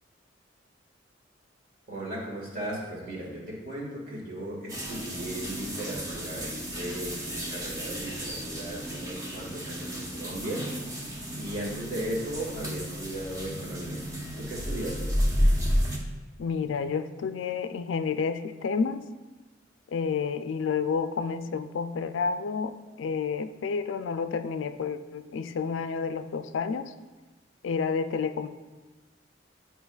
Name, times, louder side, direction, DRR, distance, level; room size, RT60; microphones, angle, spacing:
voice 1, 1.9-10.6 11.4-14.1 14.4-15.1, right 1 dB, 50° right, -4 dB, 1.7 m, -36 dB
sound 1, 4.7-16.0, equal, 20° right, 0.9 m, -31 dB
voice 2, 16.4-19.0 19.9-26.9 27.6-28.5, left 5 dB, 80° left, 11 dB, 0.4 m, -30 dB
10.0 x 4.5 x 2.3 m, 1.2 s
head